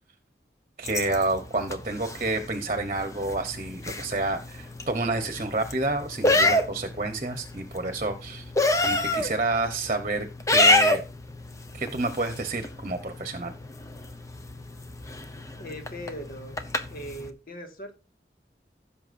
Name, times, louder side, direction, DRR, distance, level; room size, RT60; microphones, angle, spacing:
sound 1, 0.8-17.3, left 2 dB, 20° left, 0.8 m, -29 dB
voice 1, 0.8-8.5 8.8-11.0 11.7-13.5, right 2 dB, 40° right, 7 dB, 1.1 m, -29 dB
voice 2, 15.6-16.6 16.9-17.9, equal, 55° left, 4 dB, 2.0 m, -39 dB
16.0 x 7.0 x 2.6 m, 0.30 s
head